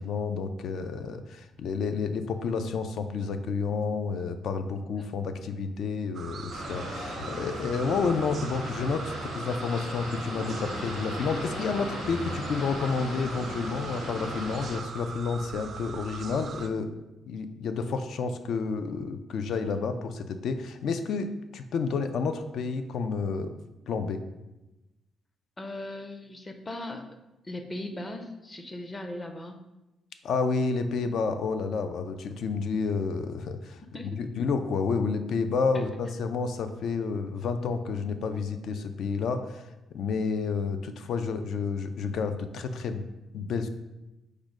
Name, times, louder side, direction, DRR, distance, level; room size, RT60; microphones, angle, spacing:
voice 1, 0.0-16.9 17.3-23.5 23.9-24.2 30.2-33.8 34.2-39.6 39.9-43.0 43.3-43.7, left 5 dB, 70° left, 9 dB, 0.4 m, -30 dB
sound 1, 6.1-16.7, right 5 dB, 50° right, 0.3 m, -41 dB
sound 2, 6.5-14.8, left 1 dB, 90° left, 1.4 m, -37 dB
voice 2, 25.6-27.0 27.4-29.6 33.9-34.2 35.7-35.8, left 1 dB, 25° left, 6 dB, 0.5 m, -38 dB
5.0 x 2.2 x 4.7 m, 1.0 s
cardioid pair, 90°, 0 cm